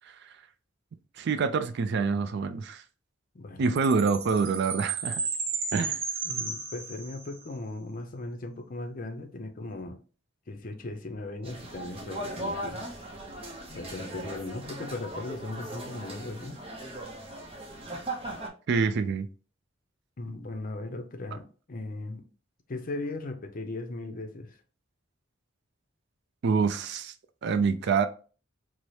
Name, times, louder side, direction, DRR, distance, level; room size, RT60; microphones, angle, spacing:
voice 1, 1.2-2.8 3.6-5.2 5.7-6.0 18.7-19.3 26.4-27.1 27.4-28.1, right 5 dB, 60° right, 0.4 m, -26 dB
voice 2, 3.3-3.7 6.2-10.0 10.5-12.8 13.7-16.6 20.2-22.2 22.7-24.6, left 2 dB, 45° left, 0.6 m, -38 dB
Chime, 3.8-7.5, right 4 dB, 85° right, 0.8 m, -33 dB
sound 1, 11.4-18.5, right 1 dB, 30° right, 0.7 m, -38 dB
4.6 x 2.0 x 2.7 m
head